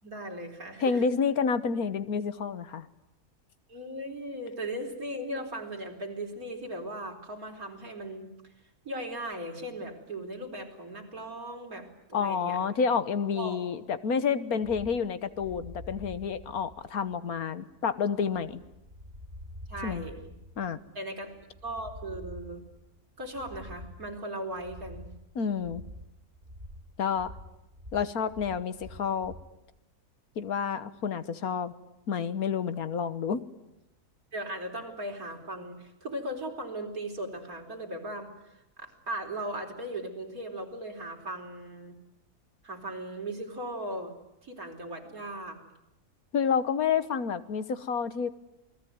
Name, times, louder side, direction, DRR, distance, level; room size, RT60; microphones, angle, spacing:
voice 1, 0.0-1.0 3.7-8.3 8.8-12.6 13.3-13.6 14.5-14.6 19.7-20.4 20.9-21.3 21.6-22.6 23.2-25.1 34.3-42.0 42.6-44.1 44.4-45.6, right 1 dB, 65° right, 2 dB, 4.6 m, -38 dB
voice 2, 0.8-2.9 12.1-18.6 19.8-20.0 20.6-20.8 25.3-25.8 27.0-27.3 27.9-29.3 30.4-31.7 32.1-33.4 46.3-48.3, left 6 dB, 70° left, 13 dB, 1.6 m, -29 dB
sound 1, 14.6-29.5, left 1 dB, 25° right, 2.0 m, -47 dB
28.0 x 20.0 x 9.4 m, 0.92 s
omnidirectional pair, 1.6 m